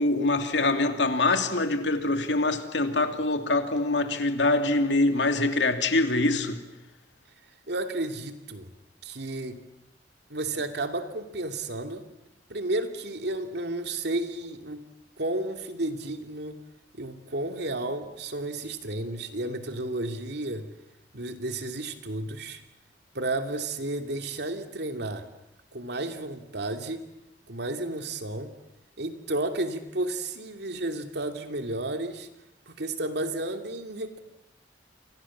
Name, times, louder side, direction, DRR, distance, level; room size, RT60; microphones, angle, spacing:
voice 1, 0.0-6.6, left 2 dB, 80° left, 7 dB, 2.8 m, -24 dB
voice 2, 7.7-8.7 9.0-9.6 10.3-12.1 12.5-14.9 15.2-16.6 16.9-20.7 21.1-22.6 23.1-25.2 25.7-27.0 27.5-28.5 29.0-32.3 32.7-34.2, right 2 dB, 65° right, 7 dB, 2.6 m, -32 dB
30.0 x 25.5 x 7.3 m, 0.88 s
head